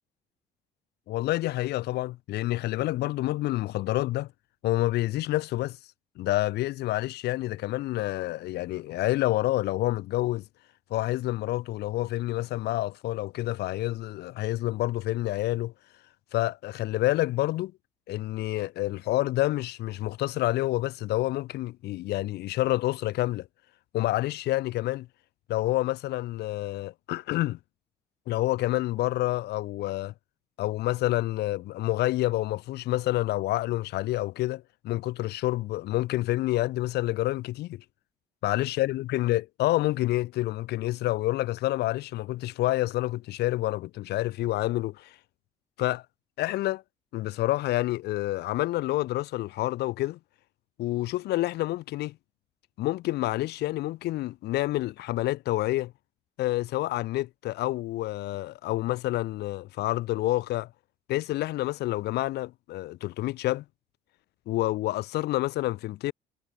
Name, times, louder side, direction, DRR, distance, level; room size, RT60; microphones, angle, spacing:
voice 1, 1.1-4.3 4.6-5.8 6.2-10.4 10.9-15.7 16.3-17.7 18.1-23.5 23.9-25.1 25.5-27.6 28.3-30.1 30.6-37.8 38.4-45.2 45.8-46.0 46.4-46.8 47.1-50.2 50.8-52.1 52.8-55.9 56.4-60.7 61.1-63.6 64.5-66.1, left 16 dB, 75° left, 1.7 m, -28 dB
cardioid pair, 110°, 17 cm